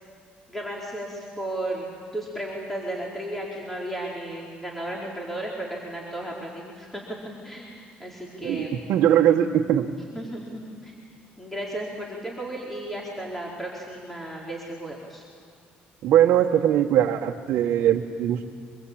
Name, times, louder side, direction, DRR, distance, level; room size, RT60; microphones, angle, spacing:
voice 1, 0.5-1.8 2.1-7.0 7.4-8.7 10.1-10.9 11.4-15.2, right 1 dB, 5° left, -3 dB, 4.6 m, -34 dB
voice 2, 8.4-9.9 16.0-18.5, right 10 dB, 70° right, 0 dB, 1.4 m, -21 dB
26.0 x 22.5 x 8.8 m, 2.4 s
cardioid pair, 95°, 4 cm